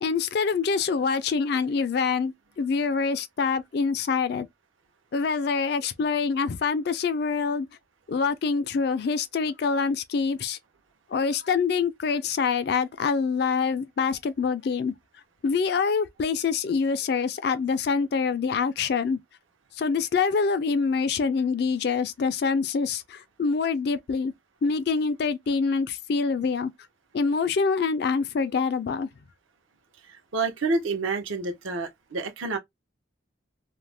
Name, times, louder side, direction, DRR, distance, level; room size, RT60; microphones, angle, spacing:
voice 1, 0.0-4.5 5.1-7.7 8.1-10.6 11.1-14.9 15.4-19.2 19.8-24.3 24.6-26.7 27.1-29.1, left 5 dB, 55° left, 0.3 m, -25 dB
voice 2, 30.3-32.6, right 3 dB, 80° right, 0.8 m, -28 dB
2.4 x 2.1 x 3.2 m
head